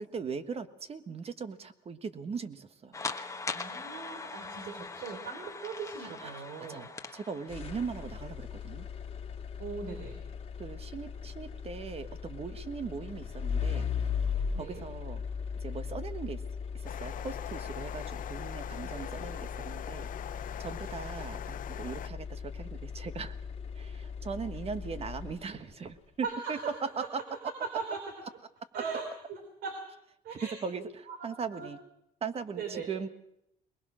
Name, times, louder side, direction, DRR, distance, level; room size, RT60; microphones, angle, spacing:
voice 1, 0.0-3.0 6.2-6.3 6.7-8.9 10.6-13.9 14.3-15.2 15.6-16.4 16.7-20.1 20.4-23.4 23.7-26.6 27.0-27.1 30.6-30.8 31.2-31.8 32.2-33.1, right 5 dB, 35° right, 11 dB, 1.4 m, -39 dB
sound 1, 2.9-8.2, left 4 dB, 20° left, 1.2 m, -41 dB
voice 2, 3.5-6.9 9.6-10.2 14.5-14.8 18.8-19.1 26.2-26.9 27.6-28.1 28.7-29.7 30.2-30.6 31.1-31.7 32.5-32.9, right 5 dB, 70° right, 5 dB, 3.5 m, -39 dB
sound 2, 7.5-25.8, left 6 dB, 35° left, 1.9 m, -38 dB
sound 3, 16.8-22.1, left 11 dB, 55° left, 0.7 m, -42 dB
21.5 x 21.0 x 6.3 m, 0.82 s
cardioid pair, 110°, 17 cm